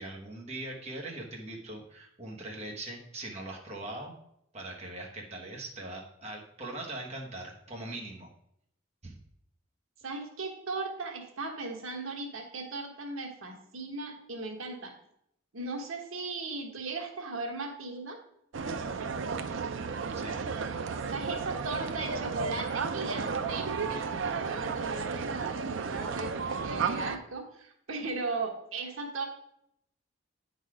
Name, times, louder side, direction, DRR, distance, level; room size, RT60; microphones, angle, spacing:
voice 1, 0.0-4.1 4.5-8.3 9.0-9.1 20.1-20.4, right 2 dB, 30° right, -1 dB, 1.3 m, -41 dB
voice 2, 10.0-14.9 15.5-18.2 21.0-24.0 24.4-29.3, right 3 dB, 90° right, 3 dB, 1.2 m, -37 dB
sound 1, 18.5-27.2, right 5 dB, 70° right, 0.5 m, -33 dB
8.9 x 4.1 x 4.8 m, 0.75 s
head